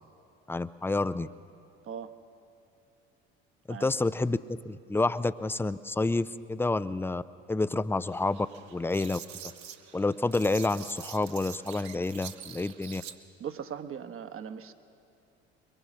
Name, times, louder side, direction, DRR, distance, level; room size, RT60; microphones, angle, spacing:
voice 1, 0.5-1.3 3.7-4.4 4.6-7.2 7.5-8.5 8.7-9.2 9.9-13.0, left 2 dB, 5° left, 15 dB, 0.5 m, -29 dB
sound 1, 8.1-13.2, right 9 dB, 60° right, 1.3 m, -46 dB
voice 2, 13.4-14.7, right 8 dB, 40° right, 9 dB, 1.3 m, -39 dB
23.0 x 21.5 x 6.3 m, 2.6 s
hypercardioid pair, 65°, 32 cm